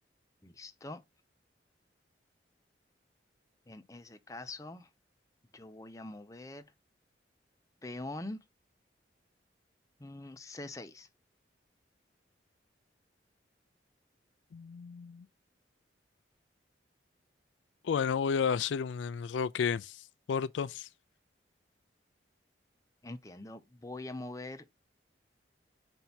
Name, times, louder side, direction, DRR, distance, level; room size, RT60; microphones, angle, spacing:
voice 1, 0.4-1.0 3.7-4.9 5.5-6.7 7.8-8.4 10.0-11.1 23.0-24.7, left 2 dB, 20° left, 0.7 m, -44 dB
voice 2, 14.5-15.3 17.8-20.9, left 6 dB, 85° left, 0.4 m, -32 dB
5.7 x 4.5 x 4.0 m
head